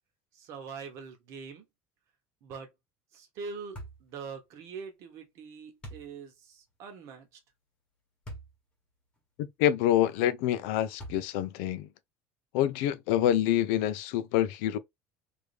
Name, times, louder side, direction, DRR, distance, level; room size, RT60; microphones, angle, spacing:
voice 1, 0.3-1.7 2.4-2.7 3.1-7.4, right 5 dB, 50° right, 1.1 m, -43 dB
sound 1, 3.7-4.1 5.8-6.1 8.2-8.5 9.2-9.3 11.0-11.5, right 1 dB, 15° left, 1.2 m, -43 dB
voice 2, 9.4-11.9 12.5-14.8, left 11 dB, 80° left, 0.4 m, -27 dB
3.2 x 2.6 x 3.2 m
cardioid pair, 170°, 7 cm